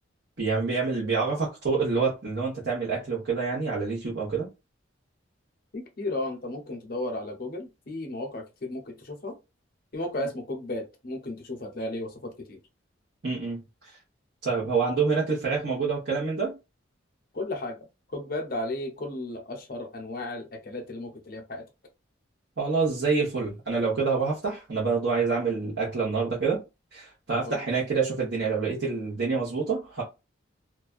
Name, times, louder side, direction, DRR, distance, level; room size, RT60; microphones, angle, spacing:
voice 1, 0.4-4.5 13.2-13.6 14.4-16.5 22.6-26.6 26.9-30.0, right 4 dB, 55° right, 0.9 m, -27 dB
voice 2, 5.7-9.4 9.9-12.6 17.3-17.9 18.1-21.6 27.4-27.6, left 1 dB, 45° left, 0.6 m, -34 dB
2.4 x 2.2 x 2.3 m
head